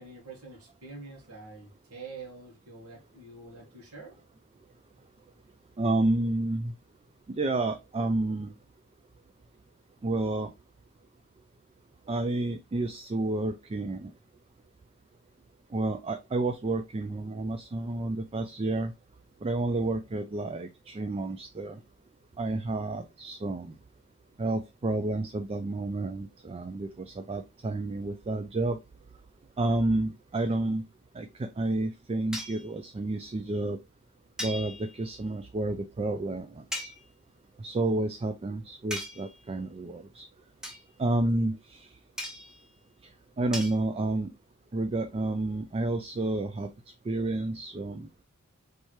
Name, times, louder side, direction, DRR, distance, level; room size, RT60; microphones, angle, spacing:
voice 1, 0.0-4.2, right 3 dB, 75° right, 1.7 m, -46 dB
voice 2, 5.8-6.7 7.3-8.5 10.0-10.5 12.1-14.1 15.7-18.9 19.4-21.8 22.4-23.7 24.4-28.8 29.6-30.8 31.1-33.8 34.4-36.9 37.6-40.3 41.0-41.9 43.4-44.3 44.7-46.7 47.0-48.1, right 2 dB, 25° right, 0.3 m, -30 dB
sound 1, 32.3-32.7 34.4-35.1 36.7-37.0 38.9-39.4 40.6-40.9 42.2-42.6 43.5-43.8, left 1 dB, 5° right, 1.0 m, -38 dB
4.3 x 3.3 x 3.1 m
head